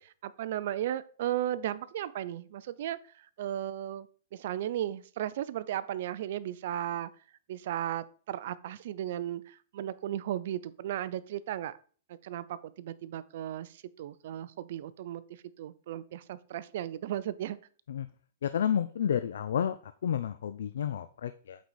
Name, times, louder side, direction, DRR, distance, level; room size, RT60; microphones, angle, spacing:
voice 1, 0.0-7.1 7.5-11.7 12.2-15.2 15.6-17.6, right 12 dB, 60° right, 0.5 m, -35 dB
voice 2, 18.4-19.8 20.0-21.6, left 9 dB, 80° left, 0.4 m, -30 dB
8.1 x 4.1 x 4.7 m
hypercardioid pair, 155°, 0 cm